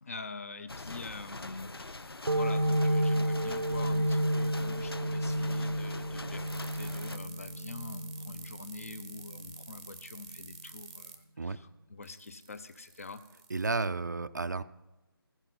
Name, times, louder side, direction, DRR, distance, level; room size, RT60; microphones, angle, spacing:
voice 1, 0.0-13.2, left 3 dB, 35° left, 12 dB, 0.6 m, -45 dB
sound 1, 0.7-7.2, left 2 dB, 75° left, 0.6 m, -43 dB
sound 2, 2.3-9.6, right 1 dB, 85° right, 0.7 m, -31 dB
sound 3, 2.7-4.8 6.5-11.2 12.0-13.9, right 7 dB, 15° right, 0.7 m, -49 dB
voice 2, 13.5-14.6, right 3 dB, 50° right, 13 dB, 0.4 m, -32 dB
14.5 x 7.3 x 5.5 m, 1.0 s
figure-of-eight pair, 155°, 13 cm